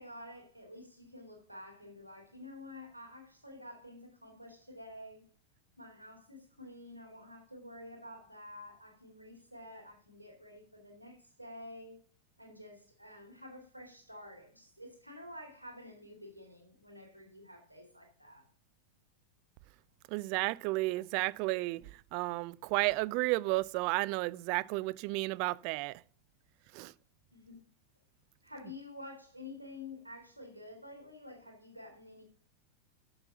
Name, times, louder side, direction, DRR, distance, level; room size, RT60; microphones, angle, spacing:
voice 1, 0.0-5.3 5.8-12.0 12.4-18.4 27.3-27.6 28.4-32.2, left 1 dB, 90° right, 2.5 m, -50 dB
voice 2, 20.1-26.0 26.7-26.9, right 21 dB, 45° right, 0.4 m, -32 dB
7.9 x 6.8 x 6.9 m
figure-of-eight pair, 90°, 0 cm